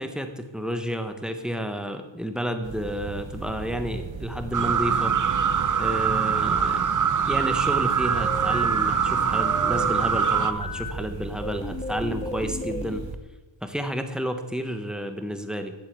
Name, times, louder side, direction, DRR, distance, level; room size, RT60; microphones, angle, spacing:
voice 1, 0.0-5.1 5.8-6.8 7.3-13.0 13.6-15.7, equal, ahead, 6 dB, 1.3 m, -31 dB
sound 1, 2.6-13.2, right 4 dB, 70° right, 1.7 m, -37 dB
sound 2, 4.5-10.5, right 7 dB, 40° right, 0.8 m, -23 dB
sound 3, 7.9-10.9 11.4-13.0, left 2 dB, 15° left, 1.0 m, -34 dB
13.5 x 8.2 x 8.3 m, 1.2 s
wide cardioid pair, 135°, 47 cm